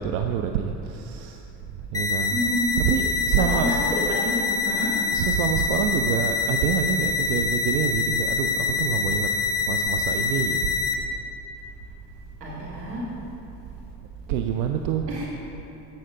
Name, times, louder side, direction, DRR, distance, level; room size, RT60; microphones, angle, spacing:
voice 1, 0.0-1.4 1.9-2.4 2.8-3.8 5.1-9.3 9.7-10.7 14.3-15.1, right 8 dB, 65° right, 5 dB, 0.6 m, -26 dB
sound 1, 1.9-10.9, left 5 dB, 10° left, 0.7 m, -25 dB
voice 2, 2.3-2.7 3.5-4.9 12.4-13.0 15.1-15.3, equal, 80° right, -5 dB, 2.2 m, -29 dB
15.0 x 5.7 x 3.7 m, 2.9 s
figure-of-eight pair, 50°, 48 cm